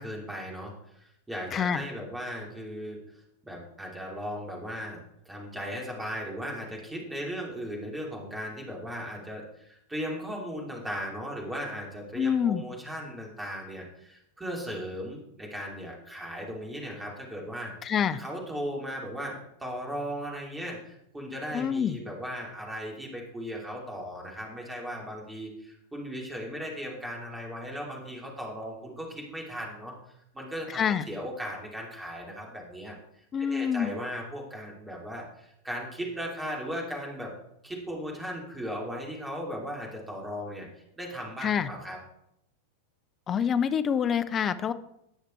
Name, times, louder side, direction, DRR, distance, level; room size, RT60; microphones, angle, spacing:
voice 1, 0.0-3.0 3.4-5.0 5.2-17.7 18.2-30.0 30.3-30.8 31.1-33.0 33.4-37.3 37.6-40.7 41.0-42.0, equal, 10° right, -1 dB, 2.8 m, -37 dB
voice 2, 1.5-1.8 12.2-12.6 17.8-18.2 21.5-22.0 30.7-31.1 33.3-33.9 41.4-41.7 43.3-44.7, left 7 dB, 25° left, 12 dB, 0.6 m, -26 dB
17.5 x 6.6 x 3.2 m, 0.79 s
figure-of-eight pair, 90°, 0 cm